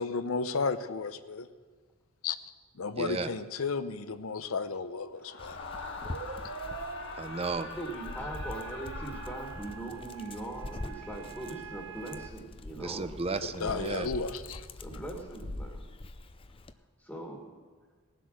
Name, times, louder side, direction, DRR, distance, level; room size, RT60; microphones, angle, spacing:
voice 1, 0.0-1.5 2.2-2.4 2.7-5.6 13.6-14.7, left 4 dB, 75° left, 12 dB, 0.7 m, -33 dB
voice 2, 3.0-3.3 7.2-7.7 12.8-14.1, right 3 dB, 30° right, 12 dB, 0.6 m, -34 dB
Screaming, 5.2-10.1, left 4 dB, 60° left, 1.2 m, -43 dB
Dog, 5.4-16.7, left 2 dB, 25° left, 0.5 m, -44 dB
sound 1, 5.8-12.3, right 6 dB, 65° right, 0.8 m, -45 dB
voice 3, 7.7-13.0 13.6-13.9 14.8-16.0 17.0-17.6, right 1 dB, 5° left, 0 dB, 1.7 m, -41 dB
18.5 x 7.6 x 6.4 m, 1.5 s
head